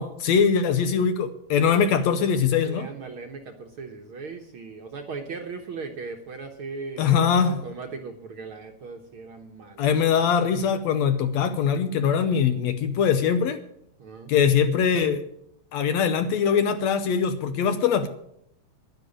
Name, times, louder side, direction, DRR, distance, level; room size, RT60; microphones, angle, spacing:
voice 1, 0.0-2.9 7.0-7.6 9.8-13.6 14.3-15.2 15.7-18.1, left 7 dB, 75° left, 1.8 m, -22 dB
voice 2, 0.8-1.1 1.7-1.8 2.6-9.9 14.0-14.3, right 4 dB, 60° right, 1.5 m, -38 dB
10.5 x 10.5 x 8.5 m
omnidirectional pair, 3.6 m